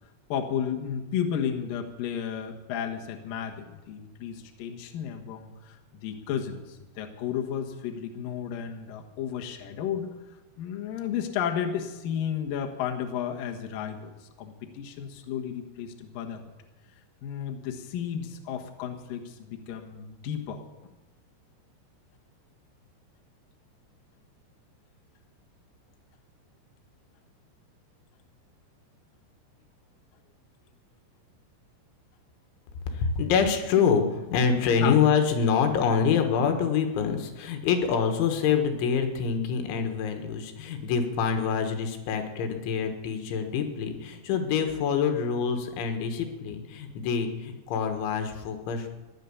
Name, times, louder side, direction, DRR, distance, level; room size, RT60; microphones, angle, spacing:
voice 1, 0.3-10.1 10.6-16.4 17.2-20.9 34.8-35.0, left 8 dB, 65° left, 2 dB, 2.5 m, -33 dB
voice 2, 32.9-48.9, left 6 dB, 85° left, 5 dB, 3.8 m, -26 dB
18.0 x 10.5 x 7.0 m, 1.1 s
omnidirectional pair, 5.4 m